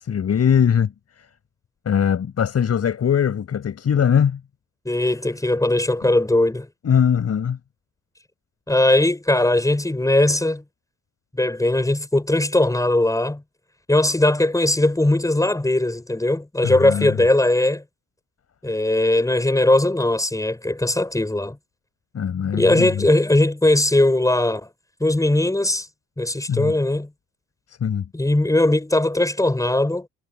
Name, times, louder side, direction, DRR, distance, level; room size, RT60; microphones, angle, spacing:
voice 1, 0.1-0.9 1.9-4.4 6.8-7.6 16.6-17.2 22.1-23.1 26.5-26.7 27.8-28.1, left 8 dB, 55° left, 5.8 m, -20 dB
voice 2, 4.8-6.7 8.7-10.6 11.3-13.4 13.9-17.8 18.6-21.6 22.5-24.7 25.0-25.9 26.2-27.1 28.1-30.1, left 1 dB, 10° left, 6.6 m, -19 dB
cardioid pair, 90°, 30 cm